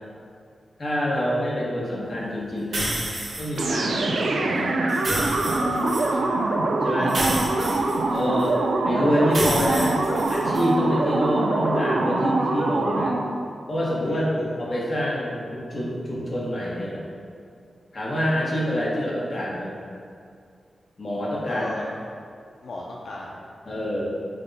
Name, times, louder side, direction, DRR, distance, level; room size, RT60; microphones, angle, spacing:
voice 1, 0.8-2.9 3.4-4.8 5.6-5.8 6.8-7.2 8.1-8.6 8.8-10.0 10.3-13.1 13.7-17.0 17.9-19.8 21.0-21.9 23.7-24.1, equal, 40° left, -5 dB, 0.8 m, -26 dB
sound 1, 2.7-3.6 4.9-6.1 7.1-8.4 9.3-10.6, right 1 dB, 65° right, 1.4 m, -29 dB
sound 2, 3.6-13.4, right 2 dB, 85° right, 0.4 m, -24 dB
voice 2, 6.0-6.7 7.0-7.8 8.2-8.6 14.1-14.5 21.5-21.9 22.6-23.4, left 2 dB, 70° left, -2 dB, 0.3 m, -37 dB
5.8 x 2.1 x 3.9 m, 2.3 s
wide cardioid pair, 180°, 0 cm